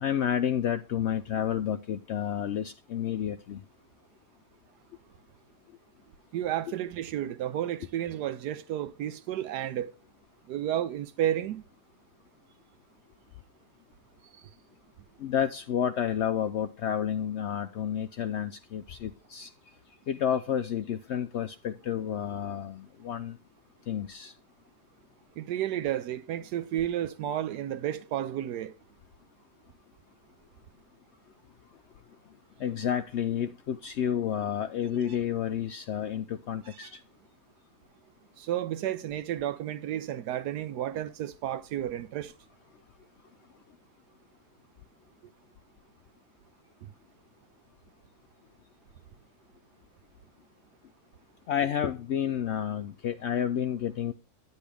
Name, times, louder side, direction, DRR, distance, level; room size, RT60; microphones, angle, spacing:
voice 1, 0.0-3.6 15.2-19.5 20.1-23.4 23.9-24.3 32.6-37.0 51.5-54.1, left 9 dB, 80° left, 0.6 m, -30 dB
voice 2, 6.3-9.9 10.5-11.6 14.3-14.5 25.4-28.7 36.6-36.9 38.4-42.3, right 11 dB, 80° right, 1.2 m, -32 dB
9.7 x 8.1 x 3.4 m
omnidirectional pair, 1.7 m